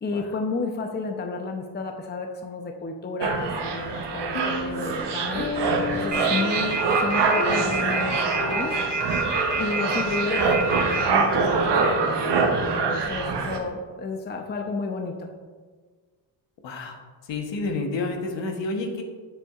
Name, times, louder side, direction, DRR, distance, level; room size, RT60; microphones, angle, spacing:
voice 1, 0.0-5.5 5.9-8.7 9.6-15.3, left 3 dB, 20° left, 3 dB, 0.7 m, -31 dB
sound 1, 3.2-13.6, right 4 dB, 55° right, 1.1 m, -25 dB
Piano, 4.3-12.2, left 3 dB, 80° left, 1.1 m, -34 dB
sound 2, 6.1-11.0, right 3 dB, 35° right, 1.8 m, -27 dB
voice 2, 16.6-17.0 17.3-19.0, left 3 dB, 60° left, 3 dB, 1.2 m, -29 dB
7.0 x 6.9 x 2.4 m, 1.5 s
supercardioid pair, 70°, 49 cm